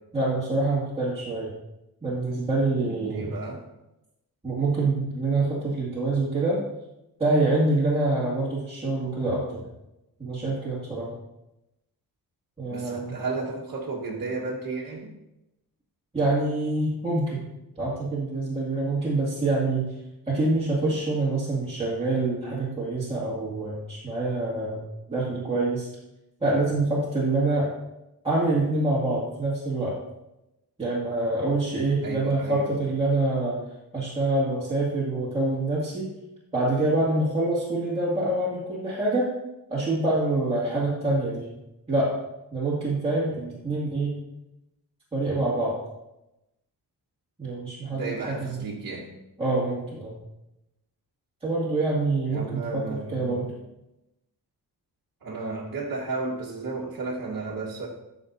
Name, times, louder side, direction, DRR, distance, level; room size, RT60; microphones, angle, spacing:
voice 1, 0.1-1.5 2.0-3.3 4.4-6.6 7.2-9.6 10.2-11.1 12.6-13.2 16.1-17.4 17.8-19.9 20.3-24.8 25.1-25.9 26.4-27.7 28.2-30.0 30.8-33.6 33.9-36.1 36.5-39.3 39.7-41.5 41.9-42.2 42.5-44.1 45.1-45.8 47.4-48.7 49.4-50.2 51.4-53.5, right 2 dB, 15° right, -9 dB, 2.2 m, -26 dB
voice 2, 2.8-3.6 12.7-15.1 32.0-32.8 47.9-49.2 52.3-53.6 55.2-57.9, right 3 dB, 60° right, -5 dB, 1.5 m, -33 dB
13.0 x 6.6 x 2.7 m, 0.92 s
wide cardioid pair, 130°, 39 cm